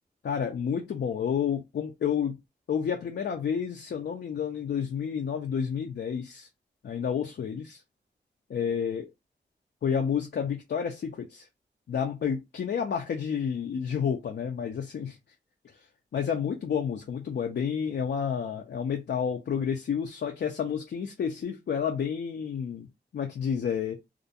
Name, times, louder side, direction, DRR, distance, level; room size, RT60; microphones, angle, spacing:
voice 1, 0.2-2.4 2.7-6.5 6.8-7.8 8.5-9.1 9.8-11.5 11.9-15.1 16.1-22.9 23.1-24.0, left 7 dB, 70° left, 0.4 m, -30 dB
2.4 x 2.1 x 2.7 m
cardioid pair, 65°, 18 cm